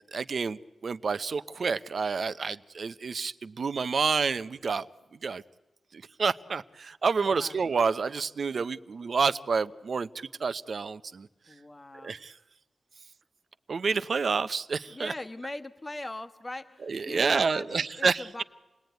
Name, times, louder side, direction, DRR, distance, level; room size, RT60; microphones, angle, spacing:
voice 1, 0.1-4.9 5.2-5.4 5.9-11.3 12.0-12.3 13.7-15.1 16.9-18.4, right 5 dB, 65° right, 13 dB, 0.8 m, -29 dB
voice 2, 11.5-12.2 14.9-18.4, left 2 dB, 25° left, 9 dB, 1.3 m, -40 dB
28.5 x 19.0 x 9.3 m, 1.1 s
cardioid pair, 65°, 0 cm